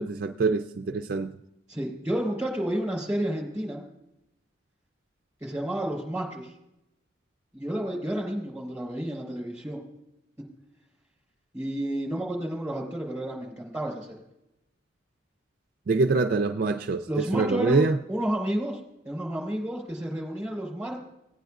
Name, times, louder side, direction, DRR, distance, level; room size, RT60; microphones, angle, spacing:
voice 1, 0.0-1.3 15.9-17.1 17.3-18.0, right 3 dB, 50° right, 0.4 m, -24 dB
voice 2, 1.7-3.8 5.4-6.5 7.5-9.8 11.5-14.2 17.1-17.8 18.1-18.8 19.0-21.0, right 1 dB, 10° right, 4.0 m, -31 dB
18.0 x 9.2 x 2.4 m
head